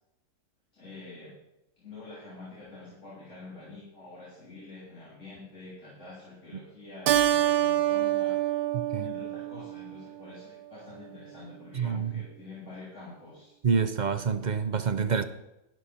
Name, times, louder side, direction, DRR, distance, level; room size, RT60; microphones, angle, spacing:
voice 1, 0.7-1.3 1.8-8.6 9.0-13.6, left 3 dB, 55° left, -9 dB, 4.0 m, -46 dB
Keyboard (musical), 7.1-9.9, right 13 dB, 85° right, 1.2 m, -26 dB
voice 2, 11.7-12.1 13.6-15.2, right 6 dB, 50° right, 10 dB, 0.5 m, -27 dB
13.0 x 11.0 x 4.3 m, 0.93 s
omnidirectional pair, 1.6 m